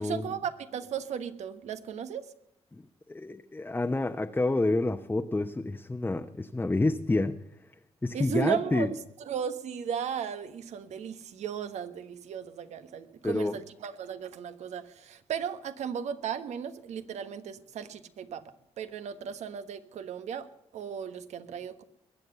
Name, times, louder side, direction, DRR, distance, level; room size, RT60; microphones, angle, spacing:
voice 1, 0.0-2.3 8.1-20.5 20.7-21.8, right 8 dB, 75° right, 11 dB, 1.3 m, -36 dB
voice 2, 3.1-7.4 8.0-8.9 13.2-13.6, left 2 dB, 15° left, 5 dB, 0.9 m, -28 dB
21.5 x 7.9 x 6.8 m, 0.77 s
cardioid pair, 70°, 12 cm